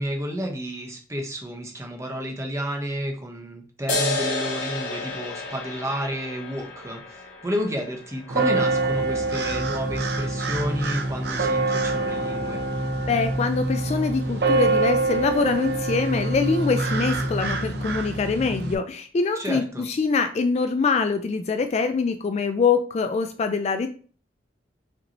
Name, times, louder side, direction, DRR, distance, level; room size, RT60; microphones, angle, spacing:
voice 1, 0.0-12.6 19.3-19.9, equal, 15° right, 2 dB, 0.9 m, -31 dB
sound 1, 3.9-10.9, left 2 dB, 75° left, 2.2 m, -32 dB
sound 2, 8.3-18.8, right 2 dB, 65° right, 0.6 m, -25 dB
voice 2, 13.1-23.9, left 4 dB, 40° left, 8 dB, 0.3 m, -24 dB
5.1 x 2.9 x 2.9 m, 0.42 s
head